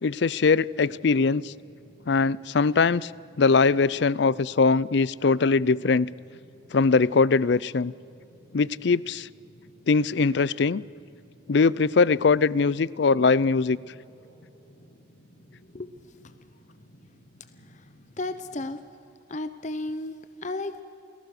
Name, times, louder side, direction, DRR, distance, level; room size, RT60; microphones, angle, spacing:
voice 1, 0.0-1.5 2.1-3.1 3.4-6.1 6.7-7.9 8.5-9.3 9.9-10.9 11.5-13.8, left 4 dB, 60° left, 21 dB, 0.5 m, -21 dB
sound 1, 0.6-18.8, equal, 80° left, 5.4 m, -55 dB
voice 2, 18.2-18.8 19.3-20.8, left 2 dB, 40° left, 10 dB, 0.8 m, -33 dB
29.0 x 19.5 x 6.6 m, 2.7 s
head